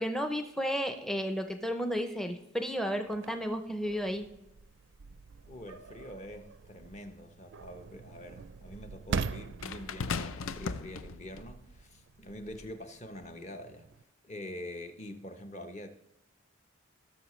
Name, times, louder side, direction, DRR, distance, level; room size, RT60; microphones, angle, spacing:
voice 1, 0.0-4.3, equal, ahead, 0.5 m, -33 dB
sound 1, 3.1-14.0, right 5 dB, 60° right, 0.4 m, -43 dB
voice 2, 5.5-13.9 14.2-15.9, left 1 dB, 35° left, 0.8 m, -45 dB
sound 2, 6.7-6.8 9.6-11.5 12.4-12.6, left 5 dB, 85° left, 0.5 m, -37 dB
17.0 x 6.6 x 3.1 m
head